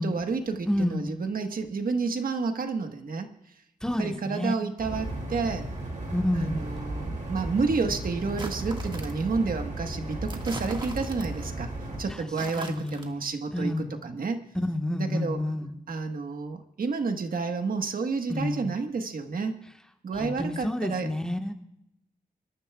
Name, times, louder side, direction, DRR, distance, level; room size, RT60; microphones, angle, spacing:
voice 1, 0.0-3.3 4.0-5.7 6.3-11.7 12.0-14.4 14.9-15.4 15.9-19.6 20.0-21.1, right 4 dB, 70° right, 6 dB, 1.4 m, -30 dB
voice 2, 0.7-1.2 3.8-4.5 6.1-6.6 12.1-13.2 13.5-13.9 14.5-15.8 18.3-18.7 20.1-21.5, left 1 dB, 5° left, 4 dB, 1.3 m, -29 dB
sound 1, 4.8-12.0, right 2 dB, 55° right, 5.7 m, -35 dB
sound 2, 8.3-9.3 10.3-11.5 12.3-13.1, right 2 dB, 30° right, 1.7 m, -41 dB
25.5 x 13.5 x 2.3 m, 0.79 s
wide cardioid pair, 135°, 15 cm